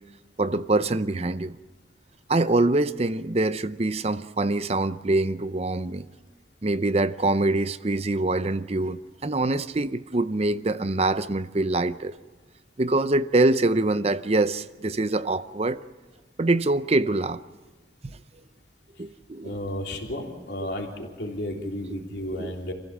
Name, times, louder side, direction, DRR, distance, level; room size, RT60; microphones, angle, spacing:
voice 1, 0.4-1.6 2.3-6.1 6.6-12.1 12.8-15.8 16.4-17.4 19.0-19.6 21.9-22.0 22.3-22.5, right 2 dB, 30° right, 0.6 m, -24 dB
voice 2, 19.4-22.7, left 1 dB, 60° left, 3.5 m, -33 dB
28.0 x 16.0 x 7.4 m
head